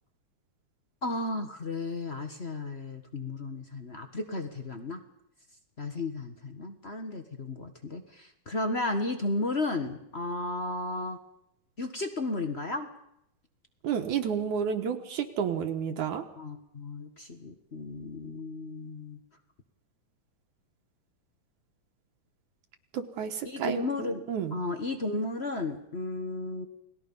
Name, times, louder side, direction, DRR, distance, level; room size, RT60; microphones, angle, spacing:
voice 1, 1.0-5.0 5.8-11.2 11.8-12.9 16.4-19.2 23.4-24.2 24.5-26.6, left 2 dB, 40° left, 6 dB, 0.8 m, -34 dB
voice 2, 13.8-16.2 22.9-24.6, right 7 dB, 70° right, 4 dB, 2.7 m, -31 dB
29.5 x 20.5 x 5.5 m, 0.76 s
omnidirectional pair, 3.6 m